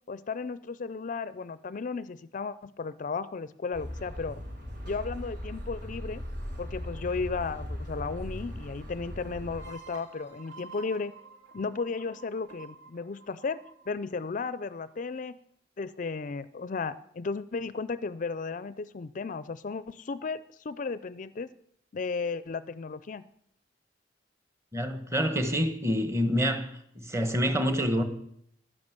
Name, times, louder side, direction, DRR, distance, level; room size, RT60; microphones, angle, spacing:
voice 1, 0.1-4.4 4.9-6.2 6.6-11.1 11.5-13.6 13.9-15.4 15.8-21.5 21.9-23.2, left 4 dB, 45° left, 16 dB, 0.4 m, -34 dB
sound 1, 3.7-9.7, equal, 50° right, 5.6 m, -38 dB
sound 2, 9.5-15.0, right 4 dB, 70° right, 2.9 m, -50 dB
voice 2, 24.7-26.7 26.9-28.0, equal, 15° right, 8 dB, 1.4 m, -27 dB
11.5 x 10.5 x 8.2 m, 0.71 s
head